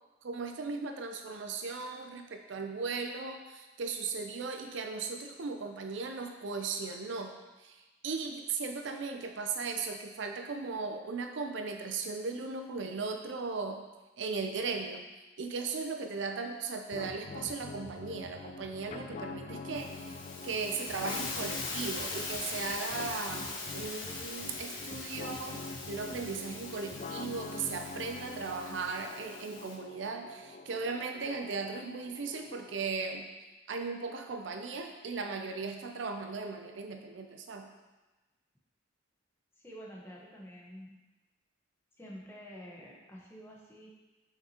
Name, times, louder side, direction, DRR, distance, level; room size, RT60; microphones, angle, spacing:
voice 1, 0.2-7.3 7.6-13.8 14.2-15.0 15.4-20.2 20.4-33.3 33.7-37.7, right 4 dB, 65° right, 4 dB, 0.5 m, -37 dB
sound 1, 16.9-32.9, left 3 dB, 40° left, 0.3 m, -45 dB
Hiss, 19.7-29.7, left 3 dB, 85° left, 1.2 m, -41 dB
voice 2, 39.6-41.0 42.0-43.9, equal, 10° left, -4 dB, 1.0 m, -48 dB
5.9 x 5.7 x 2.9 m, 1.1 s
head